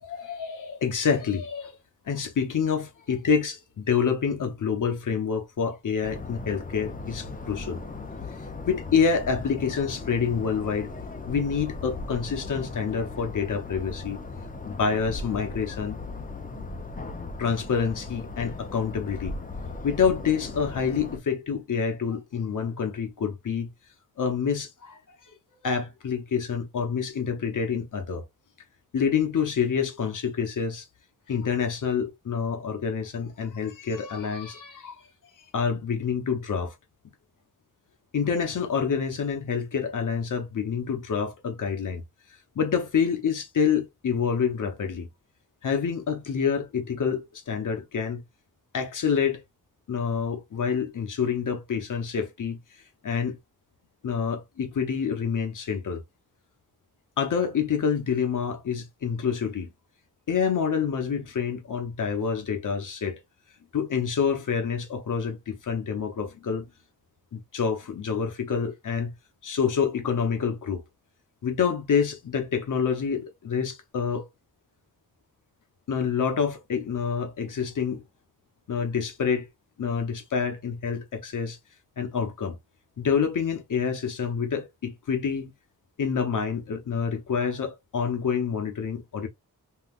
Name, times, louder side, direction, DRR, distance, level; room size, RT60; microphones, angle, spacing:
voice 1, 0.0-1.7 2.1-7.8 8.7-10.9 11.3-14.2 14.7-16.0 16.6-16.7 17.4-19.4 19.8-23.7 24.2-25.0 25.6-28.2 28.9-30.9 31.3-35.0 35.5-36.7 38.1-42.0 42.6-45.1 45.6-48.2 48.7-49.4 49.9-52.6 53.0-53.4 54.0-56.0 57.2-59.7 60.3-63.2 63.7-66.6 67.3-69.1 69.4-70.8 71.4-74.3 75.9-78.0 78.7-79.5 79.8-81.6 82.0-82.6 83.0-85.5 86.0-89.3, left 6 dB, 60° left, 0.8 m, -27 dB
sound 1, 6.0-21.2, left 3 dB, 25° left, 0.6 m, -37 dB
3.7 x 2.3 x 2.4 m
wide cardioid pair, 90°, 35 cm